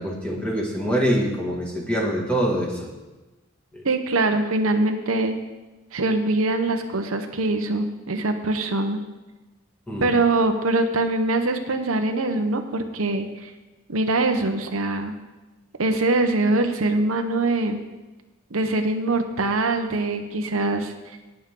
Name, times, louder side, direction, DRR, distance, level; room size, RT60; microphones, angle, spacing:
voice 1, 0.0-2.9 3.7-3.8 9.9-10.1, equal, 5° left, -3 dB, 2.2 m, -24 dB
voice 2, 3.8-5.4 5.9-9.0 10.0-13.5 13.9-15.1 15.8-17.8 18.5-20.9, right 2 dB, 85° right, 6 dB, 0.9 m, -23 dB
18.5 x 6.3 x 3.7 m, 1.1 s
head